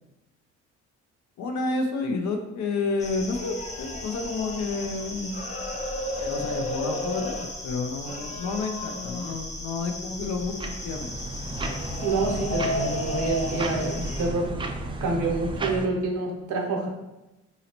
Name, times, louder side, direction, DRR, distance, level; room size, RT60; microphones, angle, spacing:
voice 1, 1.4-5.4 6.2-7.3 7.6-10.5 10.8-11.1, left 3 dB, 70° left, 3 dB, 0.5 m, -30 dB
sound 1, 3.0-14.3, left 1 dB, 25° left, 0.6 m, -33 dB
sound 2, 10.1-15.9, right 2 dB, 20° right, 0.3 m, -33 dB
voice 2, 12.0-14.5 15.0-16.9, right 3 dB, 80° right, 1 dB, 0.8 m, -27 dB
3.9 x 2.7 x 2.9 m, 0.98 s
cardioid pair, 90°, 30 cm